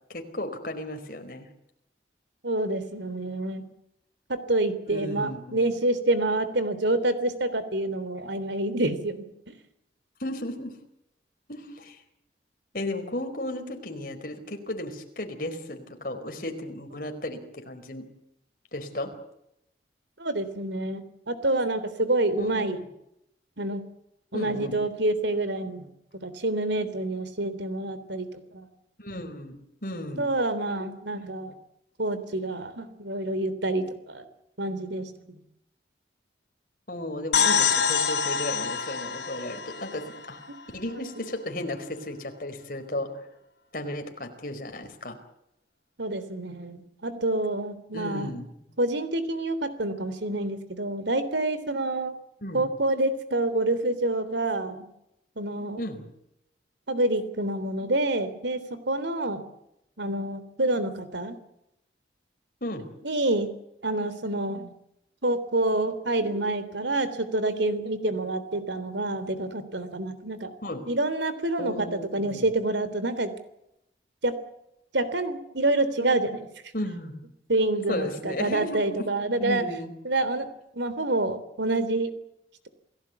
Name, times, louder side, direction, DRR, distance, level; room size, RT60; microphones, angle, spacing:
voice 1, 0.1-1.5 4.9-5.8 10.2-10.8 11.5-12.0 12.7-18.0 18.7-19.3 22.4-22.8 24.3-24.8 29.0-30.3 36.9-40.4 40.7-43.3 43.7-45.2 47.9-48.5 52.4-52.6 55.8-56.1 62.6-62.9 70.6-70.8 71.6-72.4 76.7-77.1 77.9-79.1 79.4-79.9, left 1 dB, 50° left, 5 dB, 4.6 m, -35 dB
voice 2, 2.4-3.6 4.3-9.3 20.2-22.8 23.6-23.8 24.3-25.9 26.2-28.7 30.2-31.5 32.0-34.2 34.6-35.4 46.0-48.3 48.8-52.1 52.5-54.9 55.4-55.8 56.9-59.5 60.0-61.4 63.0-63.5 63.8-64.7 65.2-70.5 70.9-73.3 74.2-74.4 74.9-76.5 77.5-79.7 80.0-80.5 80.7-82.1, right 2 dB, 80° right, 13 dB, 3.4 m, -27 dB
sound 1, 37.3-41.0, left 6 dB, 70° left, 4.3 m, -26 dB
28.5 x 17.5 x 8.3 m, 0.80 s
head